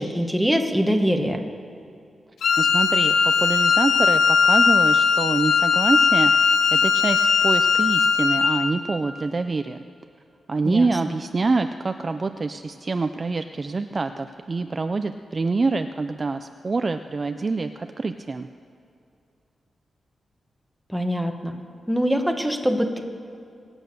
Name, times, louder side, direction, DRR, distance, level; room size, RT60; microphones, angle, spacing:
voice 1, 0.0-1.4 10.6-10.9 20.9-21.5 21.9-23.0, equal, ahead, 4 dB, 1.2 m, -23 dB
Wind instrument woodwind instrument, 2.4-8.8, left 6 dB, 80° left, 0.8 m, -19 dB
voice 2, 2.6-9.8 10.5-18.5, right 3 dB, 30° right, 8 dB, 0.4 m, -26 dB
23.0 x 8.9 x 6.7 m, 2.5 s
wide cardioid pair, 145°, 0 cm